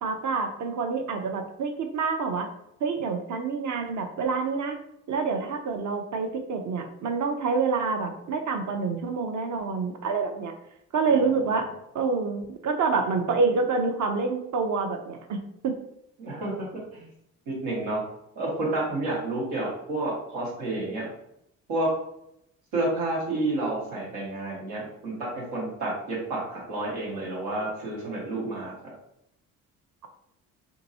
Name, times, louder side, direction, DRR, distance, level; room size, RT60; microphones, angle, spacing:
voice 1, 0.0-2.5 2.8-4.8 5.1-10.5 10.9-11.7 11.9-15.7, right 4 dB, 45° right, 5 dB, 0.7 m, -27 dB
voice 2, 16.2-16.7 16.9-17.1 17.5-18.0 18.3-21.1 21.7-21.9 22.7-28.9, right 2 dB, 80° right, -4 dB, 1.3 m, -30 dB
2.8 x 2.6 x 2.7 m, 0.78 s
hypercardioid pair, 55°, 40 cm